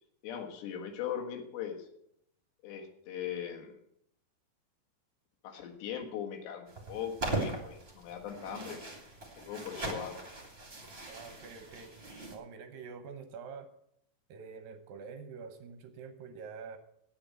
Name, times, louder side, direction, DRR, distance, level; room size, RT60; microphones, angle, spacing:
voice 1, 0.2-1.9 2.6-3.8 5.4-8.9 9.5-10.2, left 8 dB, 85° left, 3 dB, 3.7 m, -39 dB
sound 1, 6.7-12.3, right 2 dB, 20° right, 1.9 m, -40 dB
voice 2, 11.1-11.9 12.3-13.7 14.3-16.8, right 5 dB, 75° right, 8 dB, 2.2 m, -46 dB
9.5 x 8.7 x 7.6 m, 0.75 s
omnidirectional pair, 4.8 m